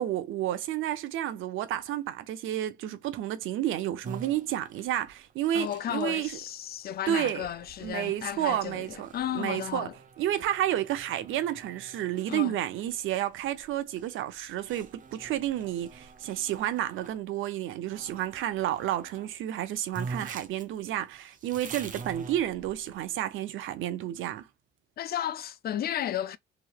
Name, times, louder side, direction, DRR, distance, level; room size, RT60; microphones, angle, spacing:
voice 1, 0.0-6.4 7.1-7.5 7.8-9.1 9.3-9.9 10.2-24.5, right 12 dB, 85° right, 0.6 m, -31 dB
sound 1, 4.0-17.2 17.9-19.3 19.6-19.7 19.9-23.0, right 4 dB, 40° right, 0.8 m, -46 dB
voice 2, 5.5-9.9 12.3-12.6 25.0-26.4, left 11 dB, 50° left, 0.4 m, -33 dB
3.0 x 2.8 x 2.2 m
cardioid pair, 90°, 20 cm